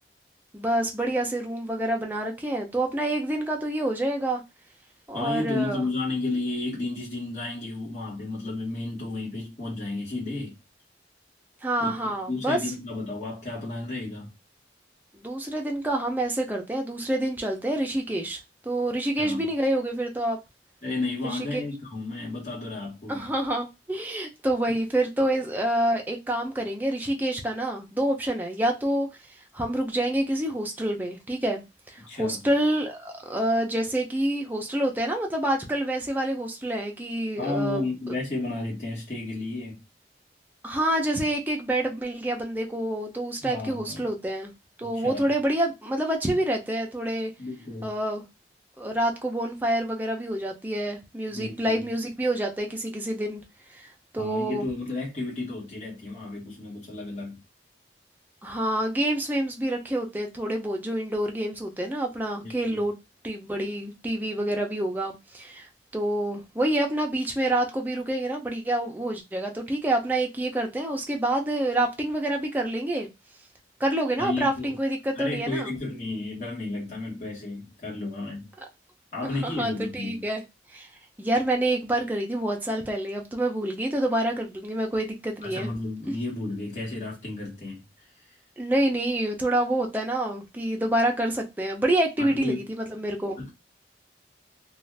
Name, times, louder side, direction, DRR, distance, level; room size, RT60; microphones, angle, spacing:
voice 1, 0.5-4.4 5.1-5.9 11.6-12.6 15.1-20.4 21.2-21.4 23.1-29.1 29.5-37.8 40.6-44.5 44.8-47.3 47.8-48.2 48.8-53.4 53.8-54.7 58.4-62.9 63.2-65.7 65.9-73.1 73.8-75.7 79.4-80.4 80.7-80.9 81.2-85.7 88.6-93.4, right 1 dB, 10° right, 0.5 m, -27 dB
voice 2, 5.1-10.5 11.8-14.3 19.2-19.4 20.8-23.3 24.7-24.8 32.0-32.4 37.4-39.8 43.4-44.0 44.8-45.3 47.4-47.9 51.3-51.8 54.1-57.4 62.4-62.9 74.2-74.8 75.1-78.5 79.1-80.3 85.4-88.1 92.2-92.7 93.4-93.5, left 2 dB, 40° left, 1.2 m, -32 dB
2.5 x 2.4 x 3.2 m
head